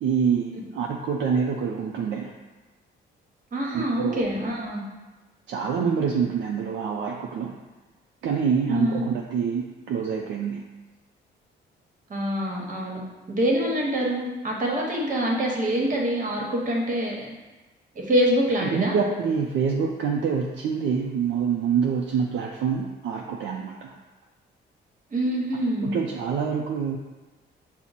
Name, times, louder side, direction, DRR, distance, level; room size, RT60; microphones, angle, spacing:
voice 1, 0.0-2.3 3.7-4.2 5.5-7.5 8.2-10.6 18.6-23.9 25.8-27.0, right 6 dB, 65° right, 0 dB, 0.5 m, -26 dB
voice 2, 3.5-4.8 8.7-9.0 12.1-13.0 13.3-17.3 17.9-18.9 25.1-25.9, equal, 40° right, -1 dB, 1.1 m, -25 dB
5.8 x 2.1 x 4.0 m, 1.2 s
cardioid pair, 90°, 20 cm